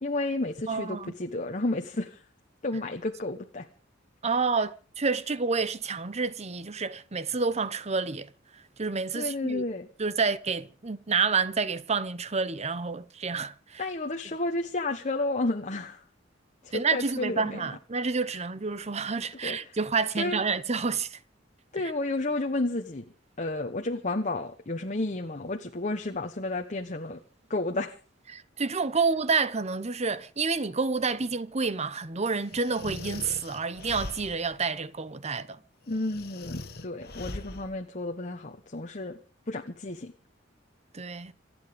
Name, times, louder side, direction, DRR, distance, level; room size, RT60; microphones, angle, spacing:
voice 1, 0.0-2.2 2.6-3.7 9.1-9.9 13.8-16.0 16.6-17.7 18.3-18.4 19.4-19.8 20.2-20.4 21.7-23.0 23.4-27.2 27.5-28.0 35.9-39.2 39.5-40.1, left 2 dB, 40° left, 1.2 m, -31 dB
voice 2, 0.7-1.1 4.2-8.3 8.8-9.6 10.0-13.8 16.7-21.2 28.3-35.6 40.9-41.3, right 4 dB, 35° right, 0.9 m, -29 dB
sound 1, 32.5-34.6 35.9-37.8, left 2 dB, 55° left, 1.5 m, -40 dB
27.0 x 9.1 x 5.2 m
head